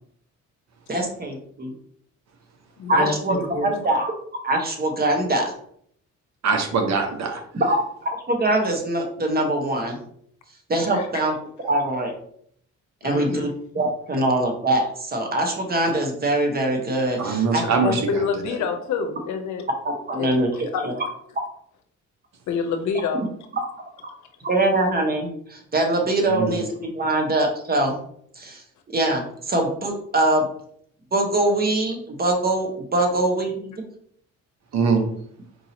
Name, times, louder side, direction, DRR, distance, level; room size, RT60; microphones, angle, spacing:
voice 1, 0.9-1.7 2.9-3.4 3.6-4.1 4.4-5.5 7.6-10.0 10.7-11.3 11.6-12.1 13.0-13.5 13.7-17.6 20.1-20.5 20.8-20.9 24.4-26.6 26.9-28.0 28.3-28.6 28.9-30.5 31.1-33.7, right 1 dB, 30° right, 2 dB, 1.0 m, -23 dB
voice 2, 2.8-3.1 3.5-3.8 10.9-11.1 13.0-13.5 17.8-19.7 20.2-21.0 22.5-23.2, left 5 dB, 70° left, 6 dB, 0.7 m, -27 dB
voice 3, 6.4-7.4 17.2-18.6 26.3-26.6 34.7-35.1, right 5 dB, 60° right, 5 dB, 0.8 m, -23 dB
4.6 x 2.7 x 2.8 m, 0.65 s
cardioid pair, 90°, 30 cm